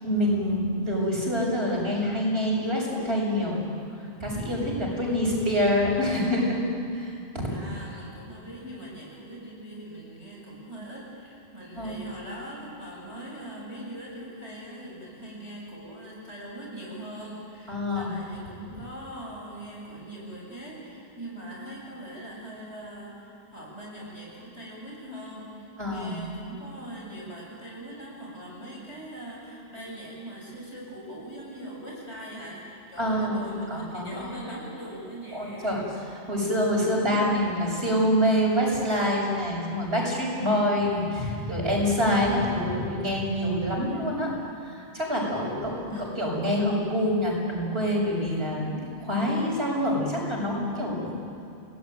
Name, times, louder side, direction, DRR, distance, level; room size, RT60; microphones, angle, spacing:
voice 1, 0.0-3.6 4.2-6.6 6.9-7.5 11.8-12.1 17.7-18.1 25.8-26.2 33.0-34.3 35.3-44.3 44.6-51.1, equal, 60° right, -2 dB, 6.6 m, -26 dB
voice 2, 4.9-5.4 7.5-35.8 45.9-46.1, right 1 dB, 75° left, -3 dB, 7.6 m, -41 dB
29.5 x 18.5 x 9.2 m, 2.5 s
omnidirectional pair, 1.2 m